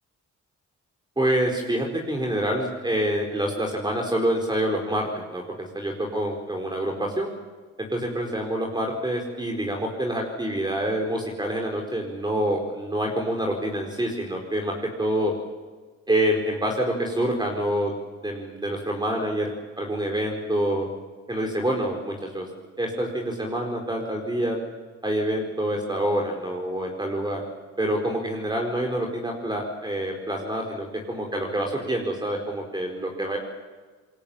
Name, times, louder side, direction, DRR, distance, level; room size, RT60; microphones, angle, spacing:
voice 1, 1.2-7.3 7.8-15.3 16.1-17.9 18.2-19.5 19.8-20.9 21.3-22.5 22.8-24.6 25.0-27.4 27.8-33.4, right 1 dB, 15° right, 1 dB, 4.5 m, -27 dB
28.0 x 22.5 x 7.4 m, 1.4 s
cardioid pair, 90°, 30 cm